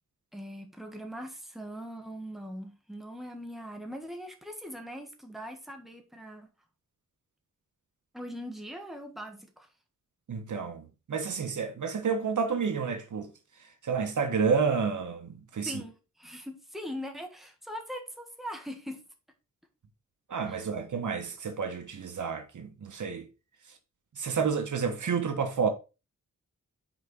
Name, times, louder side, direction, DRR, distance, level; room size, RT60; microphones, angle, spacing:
voice 1, 0.3-6.5 8.1-9.7 15.6-19.0 20.5-20.7, equal, ahead, 1.6 m, -41 dB
voice 2, 10.3-13.3 13.8-15.8 20.3-23.3 24.2-25.7, right 5 dB, 75° right, 1.3 m, -30 dB
6.1 x 4.8 x 4.4 m
wide cardioid pair, 90°, 30 cm